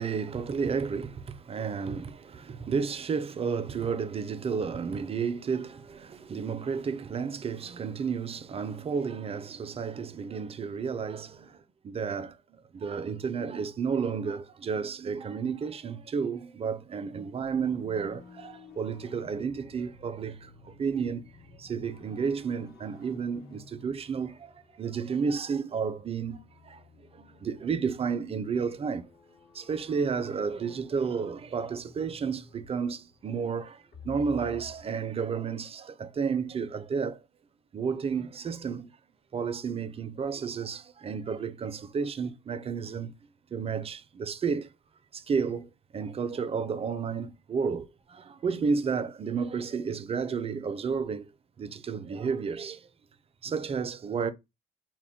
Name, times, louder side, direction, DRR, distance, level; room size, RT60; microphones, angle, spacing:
voice 1, 0.0-11.6 11.8-12.4 12.7-21.2 21.6-26.4 26.7-26.8 27.1-29.0 29.5-33.8 34.0-37.2 37.7-38.9 39.3-43.1 43.5-44.7 45.1-51.3 51.6-52.8 53.4-54.3, right 6 dB, 30° right, 0.4 m, -32 dB
sound 1, 17.5-34.8, left 5 dB, 60° left, 1.0 m, -53 dB
2.2 x 2.1 x 3.5 m
supercardioid pair, 65°, 19 cm